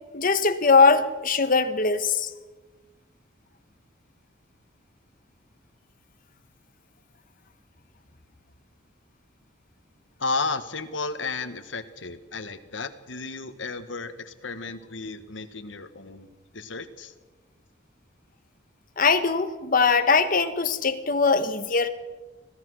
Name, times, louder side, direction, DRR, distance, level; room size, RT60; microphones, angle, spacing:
voice 1, 0.1-2.3 19.0-21.9, left 4 dB, 45° left, 9 dB, 1.4 m, -21 dB
voice 2, 10.2-17.1, left 3 dB, 75° left, 10 dB, 1.5 m, -33 dB
25.0 x 16.5 x 6.4 m, 1.3 s
head